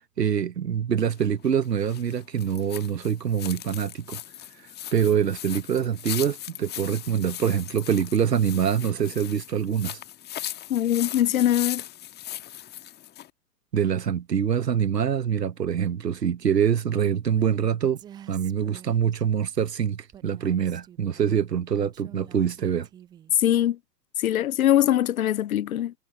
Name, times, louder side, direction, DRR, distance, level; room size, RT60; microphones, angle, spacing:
voice 1, 0.2-4.2 4.9-10.0 13.7-18.0 18.3-22.9, right 8 dB, 75° right, 1.2 m, -25 dB
sound 1, 1.0-13.3, left 12 dB, 20° left, 1.6 m, -38 dB
voice 2, 10.7-11.8 23.4-23.8 24.2-25.9, left 12 dB, 60° left, 0.6 m, -22 dB
Female speech woman speaking, 17.2-17.6 18.0-19.2 20.1-21.2 21.7-23.3, right 10 dB, 10° right, 0.5 m, -47 dB
figure-of-eight pair, 105°, 49 cm